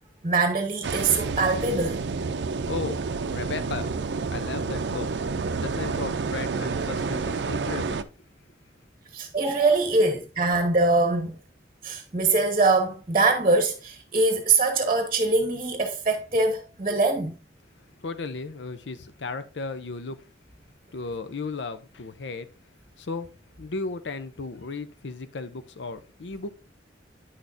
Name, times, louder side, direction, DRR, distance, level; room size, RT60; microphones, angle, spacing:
voice 1, 0.2-2.0 9.1-11.4 11.8-17.4, right 3 dB, 35° right, 0.9 m, -23 dB
sound 1, 0.8-8.0, right 4 dB, 75° right, 0.5 m, -29 dB
voice 2, 2.7-3.9 4.3-5.1 5.6-8.1 18.0-20.3 20.9-22.5 23.0-23.3 23.6-26.5, left 4 dB, 85° left, 0.6 m, -35 dB
9.3 x 6.3 x 2.6 m
head